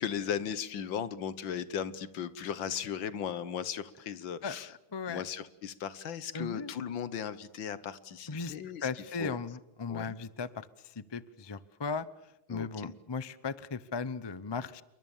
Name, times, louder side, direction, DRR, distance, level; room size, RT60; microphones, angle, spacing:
voice 1, 0.0-4.7 5.1-8.9 9.2-9.4 9.9-10.1 12.5-12.9, left 8 dB, 75° left, 15 dB, 1.9 m, -37 dB
voice 2, 4.9-5.2 6.3-6.7 8.3-8.5 8.8-12.1 12.5-14.8, left 4 dB, 30° left, 16 dB, 0.4 m, -37 dB
28.5 x 23.5 x 7.3 m, 0.89 s
omnidirectional pair, 2.1 m